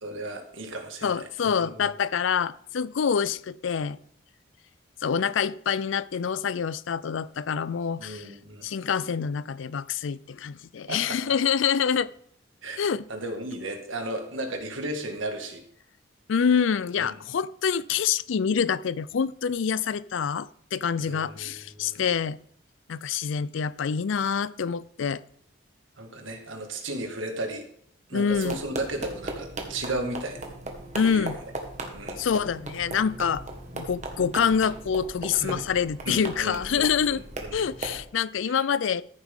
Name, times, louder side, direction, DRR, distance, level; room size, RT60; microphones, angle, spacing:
voice 1, 0.0-1.9 8.0-8.6 10.9-11.2 12.6-12.8 13.1-15.6 17.0-17.2 21.0-22.0 26.0-27.7 28.1-30.4 31.0-31.3 31.9-32.2 35.4-35.6 36.1-37.6 38.5-38.6, right 1 dB, 80° right, 4 dB, 1.9 m, -35 dB
voice 2, 1.0-4.0 5.0-8.3 8.6-12.1 12.8-13.0 16.3-22.4 22.9-25.2 28.1-28.6 30.9-31.4 32.2-33.4 33.7-37.2 37.5-39.0, left 7 dB, 75° left, 19 dB, 0.4 m, -26 dB
sound 1, 28.3-38.0, right 2 dB, 35° right, 1.6 m, -38 dB
14.0 x 7.4 x 3.7 m, 0.65 s
head